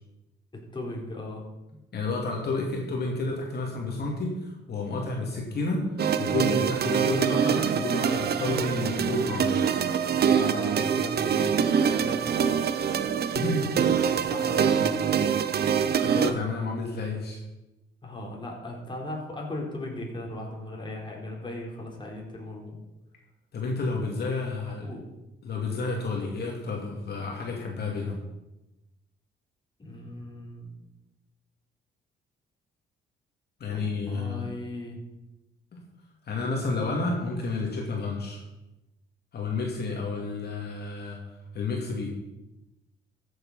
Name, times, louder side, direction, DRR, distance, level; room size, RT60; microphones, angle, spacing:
voice 1, 0.5-1.5 10.3-12.6 14.1-15.7 18.0-22.8 24.6-25.0 29.8-30.8 33.7-35.0, left 1 dB, 25° left, -1 dB, 4.0 m, -38 dB
voice 2, 1.9-9.6 13.3-13.9 16.0-17.4 23.5-24.9 25.4-28.2 33.6-34.5 35.7-35.8 36.2-38.4 39.3-41.2 41.5-42.1, left 3 dB, 55° left, -1 dB, 2.7 m, -30 dB
sound 1, 6.0-16.3, right 7 dB, 55° right, 0.9 m, -25 dB
14.0 x 8.1 x 5.7 m, 1.0 s
cardioid pair, 90°, 20 cm